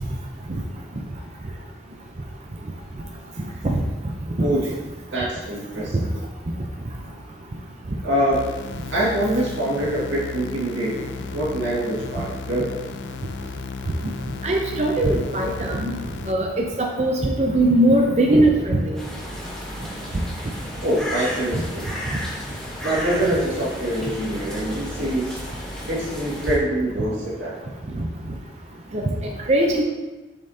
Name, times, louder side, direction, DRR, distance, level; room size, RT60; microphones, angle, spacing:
voice 1, 4.4-4.8 5.1-5.9 8.0-8.5 8.9-12.8 20.8-21.9 22.8-25.4 25.9-27.6, right 1 dB, 90° right, -5 dB, 1.9 m, -24 dB
sound 1, 8.3-16.3, left 4 dB, 75° left, 0.4 m, -34 dB
voice 2, 14.4-15.9 16.3-19.0 28.0-28.1 28.9-29.8, right 1 dB, 35° right, 0 dB, 0.5 m, -20 dB
sound 2, 18.9-26.6, equal, 5° left, 1.1 m, -33 dB
7.0 x 5.5 x 2.8 m, 1.2 s
head